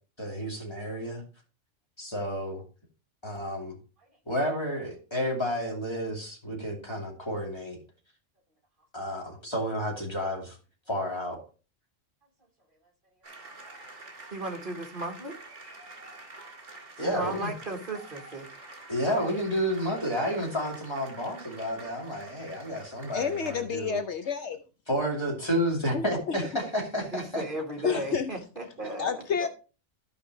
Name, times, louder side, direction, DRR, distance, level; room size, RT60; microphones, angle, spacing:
voice 1, 0.2-1.2 2.0-2.6 3.2-3.8 4.3-7.8 8.9-10.6 10.9-11.4 17.0-17.5 18.9-24.0 24.9-27.4, equal, 20° left, 2.6 m, -31 dB
sound 1, 13.2-23.6, right 3 dB, 65° right, 2.5 m, -47 dB
voice 2, 14.3-15.3 17.0-18.5 27.1-29.5, right 2 dB, 45° right, 1.5 m, -36 dB
voice 3, 23.1-24.6 25.9-26.4 27.8-28.3 29.0-29.5, left 6 dB, 65° left, 0.9 m, -29 dB
14.5 x 5.1 x 3.0 m
omnidirectional pair, 1.3 m